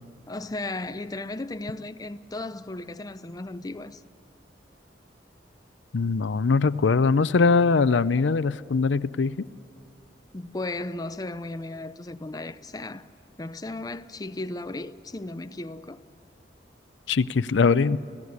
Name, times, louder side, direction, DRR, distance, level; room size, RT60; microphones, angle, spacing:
voice 1, 0.3-4.0 10.3-13.1 13.4-16.0, left 2 dB, 20° left, 0.5 m, -35 dB
voice 2, 5.9-9.4 17.1-18.0, left 4 dB, 80° left, 0.5 m, -21 dB
29.5 x 16.0 x 9.5 m
head